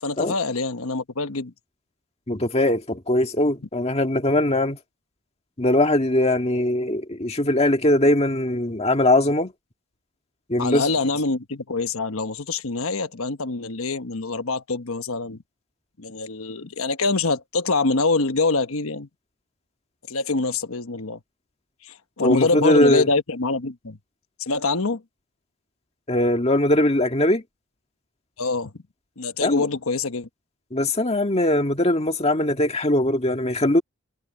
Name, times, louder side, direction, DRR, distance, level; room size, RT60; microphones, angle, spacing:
voice 1, 0.0-1.5 10.6-15.4 16.0-19.1 20.1-21.2 21.8-24.0 24.4-25.0 28.4-28.7 29.2-30.3, left 3 dB, 70° left, 1.2 m, -25 dB
voice 2, 2.3-4.8 5.6-9.5 10.5-10.9 22.2-23.1 26.1-27.4 29.4-29.7 30.7-33.8, left 1 dB, 30° left, 1.8 m, -21 dB
head